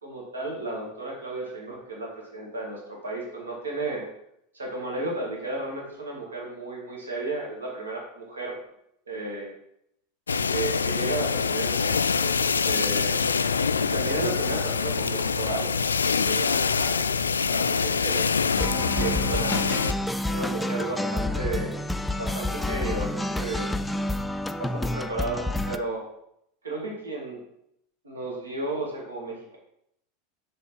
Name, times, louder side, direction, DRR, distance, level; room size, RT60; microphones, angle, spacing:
voice 1, 0.0-4.1 4.5-8.6 9.1-9.5 10.5-12.4 12.6-13.2 13.8-15.7 16.1-19.6 20.3-21.7 22.2-23.8 24.6-26.0 26.6-27.4 28.0-29.6, right 2 dB, 75° right, -1 dB, 2.2 m, -33 dB
sound 1, 10.3-19.9, left 5 dB, 75° left, 0.3 m, -25 dB
sound 2, 10.8-16.4, right 2 dB, 25° right, 1.4 m, -46 dB
sound 3, 18.5-25.8, left 1 dB, 5° left, 0.4 m, -29 dB
6.7 x 5.2 x 5.5 m, 0.76 s
figure-of-eight pair, 85°, 0 cm